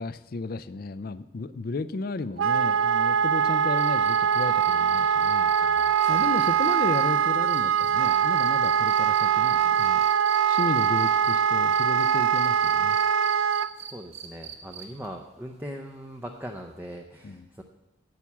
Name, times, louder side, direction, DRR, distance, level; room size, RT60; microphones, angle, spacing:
voice 1, 0.0-5.5 6.1-10.0 10.5-13.0 17.2-17.4, left 3 dB, 50° left, 15 dB, 0.4 m, -33 dB
Wind instrument woodwind instrument, 2.4-13.7, right 8 dB, 85° right, 0.4 m, -22 dB
sound 1, 3.8-11.4 11.7-15.1 16.7-16.8, right 8 dB, 35° right, 1.3 m, -43 dB
voice 2, 5.5-6.3 13.7-17.6, equal, 10° right, 3 dB, 0.6 m, -41 dB
9.1 x 8.5 x 7.1 m, 1.0 s
head